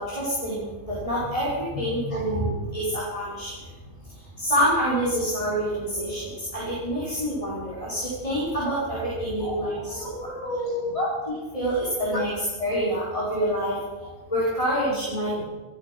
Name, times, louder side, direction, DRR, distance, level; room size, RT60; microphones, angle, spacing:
voice 1, 0.0-3.5 4.4-10.1 10.9-13.8 14.3-15.4, equal, 20° left, -8 dB, 5.2 m, -27 dB
voice 2, 9.4-11.1 12.1-12.2, left 1 dB, 70° left, -3 dB, 6.1 m, -32 dB
15.5 x 15.0 x 6.1 m, 1.2 s
omnidirectional pair, 1.5 m